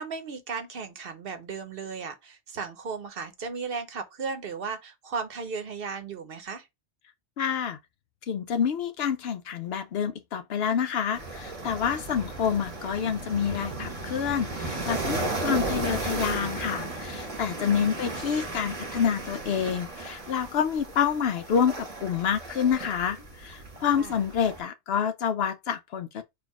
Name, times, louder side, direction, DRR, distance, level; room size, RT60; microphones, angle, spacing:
voice 1, 0.0-6.7 24.0-24.2, right 5 dB, 55° right, 0.9 m, -36 dB
voice 2, 7.4-7.8 8.3-26.2, left 7 dB, 65° left, 0.8 m, -28 dB
sound 1, 11.1-24.6, right 2 dB, 35° right, 1.0 m, -35 dB
4.4 x 2.5 x 4.6 m
omnidirectional pair, 1.2 m